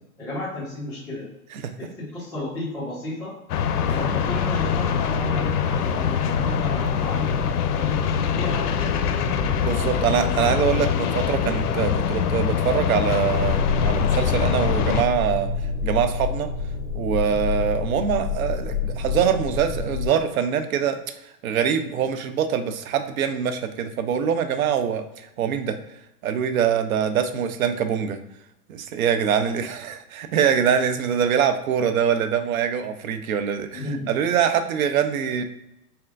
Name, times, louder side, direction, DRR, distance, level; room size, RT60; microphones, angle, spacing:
voice 1, 0.2-1.3 1.8-3.3 3.9-7.4 7.7-9.2 33.7-34.1, left 1 dB, 5° left, -13 dB, 1.0 m, -33 dB
sound 1, 3.5-15.0, left 7 dB, 80° left, 0.6 m, -23 dB
voice 2, 9.6-15.5 15.8-16.5 16.9-21.0 21.4-25.8 26.2-28.2 28.7-35.4, right 8 dB, 65° right, 9 dB, 0.6 m, -24 dB
sound 2, 13.3-20.1, left 4 dB, 30° left, 0.4 m, -27 dB
4.2 x 3.4 x 2.4 m, 0.88 s
hypercardioid pair, 140°, 46 cm